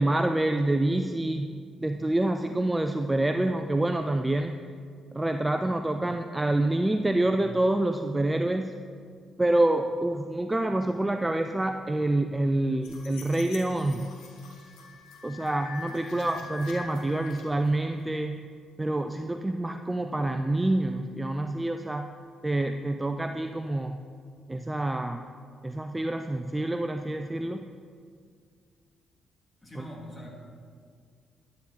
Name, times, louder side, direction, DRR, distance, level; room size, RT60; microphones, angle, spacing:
voice 1, 0.0-4.6 5.1-8.7 9.4-14.1 15.2-18.5 18.8-22.1 22.4-24.0 24.5-25.3 25.6-27.6 29.8-29.9, right 1 dB, 15° right, 7 dB, 0.4 m, -27 dB
sound 1, 12.8-18.0, left 5 dB, 85° left, 1.8 m, -45 dB
voice 2, 29.6-30.4, equal, 15° left, -2 dB, 2.6 m, -44 dB
11.0 x 9.4 x 4.3 m, 2.1 s
cardioid pair, 90°, 0 cm